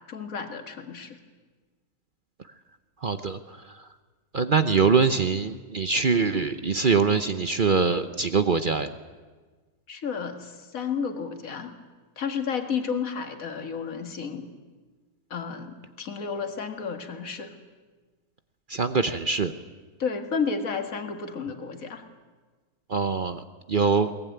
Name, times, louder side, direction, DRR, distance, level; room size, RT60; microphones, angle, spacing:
voice 1, 0.1-1.2 9.9-11.7 12.2-14.5 15.3-17.5 20.0-22.0, left 6 dB, 55° left, 6 dB, 2.1 m, -32 dB
voice 2, 3.0-3.6 4.3-8.9 18.7-19.5 22.9-23.4 23.7-24.1, right 5 dB, 45° right, 10 dB, 0.6 m, -23 dB
22.0 x 19.0 x 9.3 m, 1.4 s
omnidirectional pair, 1.8 m